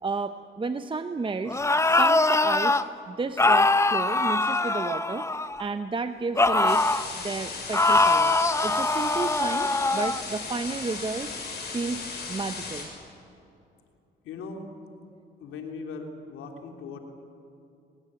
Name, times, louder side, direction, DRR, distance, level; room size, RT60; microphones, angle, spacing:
voice 1, 0.0-2.8 3.1-5.3 5.6-6.9 7.2-11.3 11.7-12.9, right 4 dB, 25° right, 9 dB, 0.8 m, -32 dB
sound 1, 1.5-2.8 3.4-5.6 6.4-7.1 7.7-10.2, left 2 dB, 15° left, 0.9 m, -22 dB
sound 2, 6.7-12.8, left 4 dB, 55° left, 7.4 m, -36 dB
voice 2, 14.2-14.6 15.4-17.0, left 4 dB, 90° left, 3 dB, 3.2 m, -39 dB
23.5 x 21.0 x 8.8 m, 2.6 s
cardioid pair, 90°, 20 cm